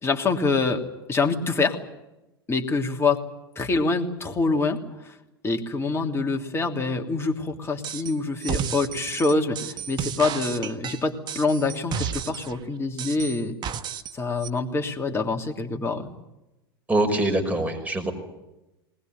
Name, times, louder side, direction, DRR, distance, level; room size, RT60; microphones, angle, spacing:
voice 1, 0.0-1.8 2.5-3.2 3.5-5.2 5.4-13.6 14.1-16.1, left 3 dB, 20° left, 3 dB, 3.0 m, -25 dB
sound 1, 7.8-8.1 8.4-12.5 13.0-14.1 14.4-14.5, right 8 dB, 35° right, 1.4 m, -32 dB
voice 2, 16.9-18.1, right 1 dB, 10° right, 3 dB, 5.6 m, -23 dB
21.0 x 20.0 x 9.4 m, 0.96 s
hypercardioid pair, 90°, 13 cm